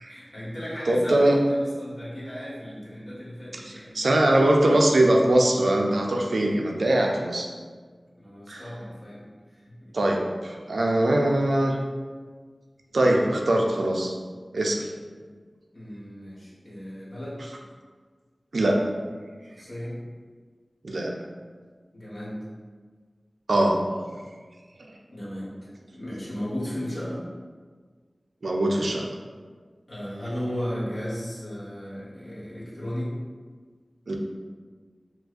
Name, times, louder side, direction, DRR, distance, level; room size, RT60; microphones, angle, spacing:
voice 1, 0.1-4.2 8.2-9.9 10.7-10.9 15.7-17.5 19.4-20.0 21.9-22.4 25.1-27.3 29.9-33.1, equal, 55° left, -8 dB, 1.2 m, -35 dB
voice 2, 0.9-1.4 3.6-7.5 8.5-8.6 9.9-11.8 12.9-14.1 14.5-14.9 18.5-18.8 20.8-21.1 23.5-23.8 28.4-29.0 34.1-34.2, right 1 dB, 85° right, 0 dB, 0.4 m, -22 dB
4.5 x 2.1 x 2.5 m, 1.5 s
wide cardioid pair, 45°, 0 cm